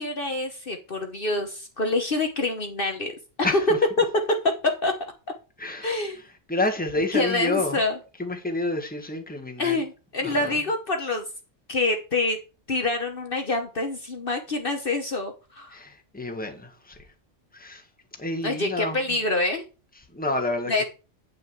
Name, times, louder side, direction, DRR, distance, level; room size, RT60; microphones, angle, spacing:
voice 1, 0.0-3.1 4.0-4.1 4.6-4.9 5.8-6.2 7.1-8.0 9.6-11.3 11.7-12.4 12.7-15.8 18.4-19.6 20.7-20.8, left 3 dB, 50° left, 1.3 m, -26 dB
voice 2, 5.6-5.9 6.5-7.8 8.2-9.8 10.2-10.5 15.7-17.0 17.5-17.8 18.2-19.0 20.1-20.8, left 2 dB, 5° left, 1.6 m, -29 dB
9.2 x 5.8 x 4.7 m
omnidirectional pair, 1.2 m